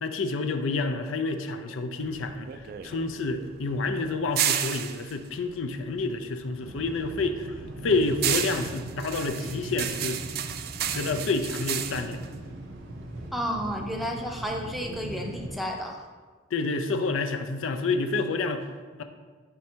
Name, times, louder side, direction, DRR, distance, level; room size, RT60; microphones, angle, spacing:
voice 1, 0.0-7.6 7.8-10.2 10.9-12.2 16.5-18.7 19.0-19.1, left 3 dB, 85° left, 8 dB, 0.5 m, -29 dB
sound 1, 2.0-6.5 6.8-13.3, right 10 dB, 50° right, 0.3 m, -32 dB
sound 2, 6.6-15.6, right 1 dB, 80° right, 0.8 m, -39 dB
voice 2, 13.3-16.1, equal, ahead, 1 dB, 0.5 m, -32 dB
5.3 x 4.7 x 4.3 m, 1.4 s
head